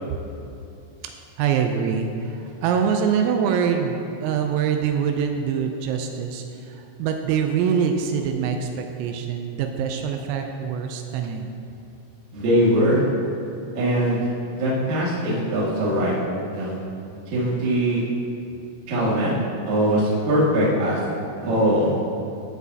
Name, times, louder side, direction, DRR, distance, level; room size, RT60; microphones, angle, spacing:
voice 1, 1.4-6.4 6.7-11.5, right 7 dB, 85° right, 4 dB, 3.2 m, -24 dB
voice 2, 12.3-13.0 13.7-16.1 16.5-16.7 17.3-18.0 18.9-19.3 19.6-21.0 21.4-22.0, equal, 50° right, -7 dB, 2.5 m, -21 dB
15.0 x 7.0 x 2.8 m, 2.7 s
omnidirectional pair, 5.9 m